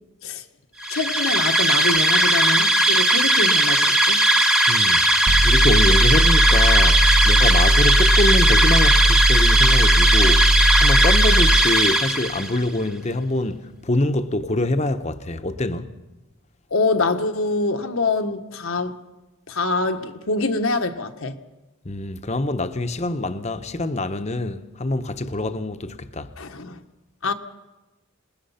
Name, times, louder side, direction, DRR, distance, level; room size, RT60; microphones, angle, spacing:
sound 1, 0.8-12.6, right 1 dB, 5° right, 1.1 m, -18 dB
voice 1, 0.9-4.2 16.7-19.0 19.5-21.4 26.4-26.8 27.2-27.3, left 3 dB, 75° left, 1.3 m, -25 dB
voice 2, 4.7-10.5 10.8-15.9 21.8-26.3, left 2 dB, 30° left, 0.9 m, -25 dB
sound 2, 5.3-11.7, right 1 dB, 40° right, 0.8 m, -18 dB
27.0 x 20.0 x 5.7 m
head